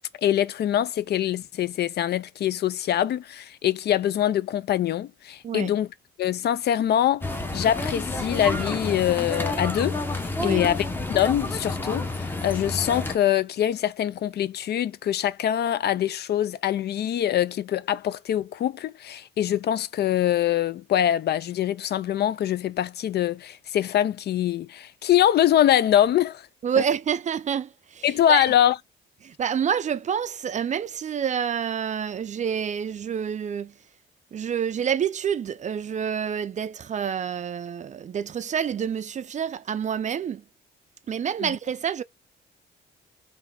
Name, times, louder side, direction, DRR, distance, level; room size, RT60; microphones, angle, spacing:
voice 1, 0.2-5.9 6.2-7.3 7.5-26.5 28.0-28.7 41.4-41.6, left 11 dB, 55° left, 0.4 m, -24 dB
sound 1, 7.2-13.2, left 2 dB, 10° left, 0.8 m, -29 dB
voice 2, 26.6-28.4 29.2-33.7 34.3-40.4 41.1-42.0, right 8 dB, 35° right, 0.4 m, -28 dB
3.4 x 2.6 x 3.3 m
cardioid pair, 90°, 20 cm